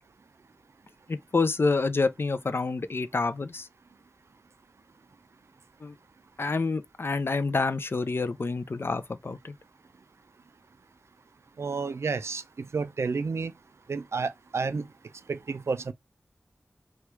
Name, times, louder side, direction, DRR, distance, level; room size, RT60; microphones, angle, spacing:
voice 1, 1.1-3.7 5.8-5.9 6.4-9.5, left 3 dB, 55° left, 0.4 m, -28 dB
voice 2, 11.6-12.4 12.7-13.5 13.9-14.8 15.3-15.9, right 4 dB, 75° right, 0.3 m, -30 dB
3.2 x 2.3 x 2.9 m
wide cardioid pair, 45°, 5 cm